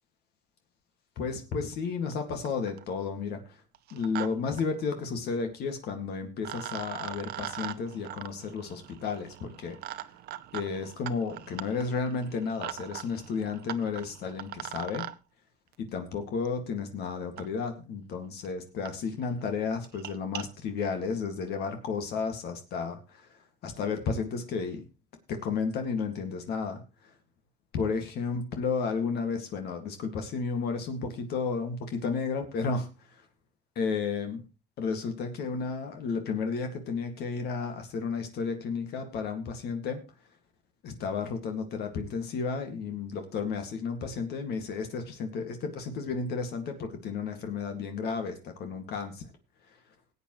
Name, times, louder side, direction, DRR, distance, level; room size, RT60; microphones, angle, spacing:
voice 1, 1.2-3.4 3.9-9.8 10.5-15.1 15.8-23.3 23.6-24.8 25.3-26.8 27.7-32.9 33.8-34.4 34.8-40.0 40.8-49.2, left 5 dB, 70° left, 6 dB, 2.1 m, -32 dB
sound 1, 2.1-2.2 2.5-2.9 3.7-4.3 4.5-4.6 5.9-6.0 6.4-15.1 16.5-16.6 17.4-17.5 18.1-18.2 18.4-18.5 18.9-19.0 19.2-19.4 19.8-20.4, right 13 dB, 70° right, 0.8 m, -41 dB
19.5 x 8.5 x 3.1 m, 0.29 s
cardioid pair, 110°, 17 cm